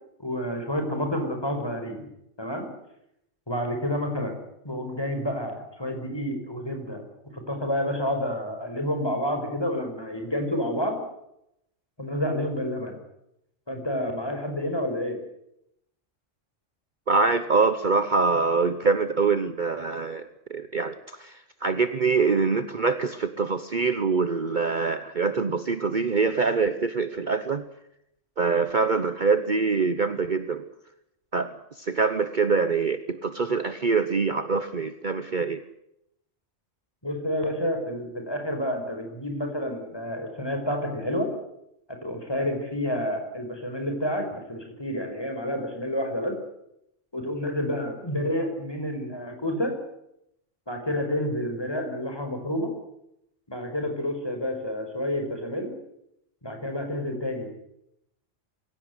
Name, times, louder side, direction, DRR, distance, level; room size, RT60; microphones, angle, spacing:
voice 1, 0.2-2.1 2.4-2.7 3.5-4.4 4.6-7.0 7.3-11.0 12.0-13.0 13.7-15.2 37.0-41.3 42.0-46.4 47.1-49.8 50.7-52.7 53.5-55.7 56.4-57.5, left 1 dB, 20° left, 4 dB, 5.5 m, -29 dB
voice 2, 17.1-27.6 28.4-30.6 31.3-35.6, right 4 dB, 45° right, 11 dB, 1.1 m, -24 dB
24.5 x 16.5 x 9.8 m, 0.81 s
omnidirectional pair, 1.2 m